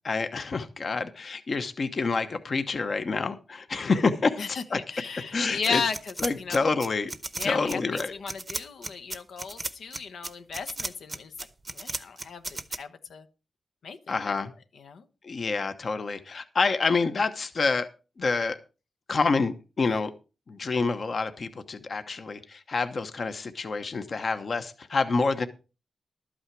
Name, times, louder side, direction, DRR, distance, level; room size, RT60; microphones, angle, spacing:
voice 1, 0.0-4.8 5.3-5.8 6.2-7.1 7.4-8.1 14.1-14.5 15.2-17.9 18.2-18.6 19.1-20.1 20.5-25.5, left 4 dB, 40° left, 9 dB, 0.9 m, -27 dB
voice 2, 4.4-6.7 7.4-11.3 11.7-13.2 13.8-14.4 14.8-15.0, left 5 dB, 75° left, 9 dB, 1.0 m, -35 dB
sound 1, 5.6-12.8, right 2 dB, 20° right, 0.8 m, -35 dB
12.5 x 8.7 x 4.7 m, 0.32 s
wide cardioid pair, 150°, 0 cm